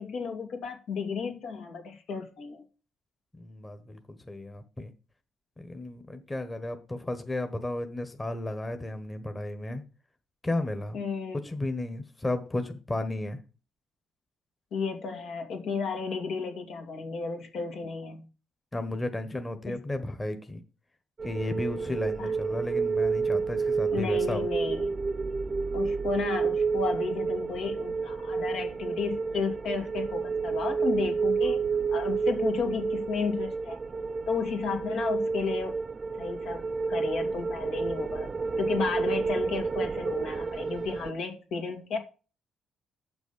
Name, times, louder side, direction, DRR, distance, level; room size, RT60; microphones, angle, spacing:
voice 1, 0.0-2.6 10.9-11.4 14.7-18.2 19.7-19.8 22.2-22.3 23.9-24.9 25.7-31.6 31.9-33.8 34.3-35.7 36.2-36.6 36.9-38.3 38.6-42.0, left 5 dB, 75° left, 2.6 m, -33 dB
voice 2, 3.4-4.9 5.6-9.8 10.4-11.0 11.4-13.4 18.7-20.6 21.2-24.5, left 1 dB, 20° left, 1.3 m, -33 dB
sound 1, 21.2-41.1, right 4 dB, 35° right, 0.4 m, -30 dB
7.5 x 6.2 x 7.0 m
cardioid pair, 90°, 0 cm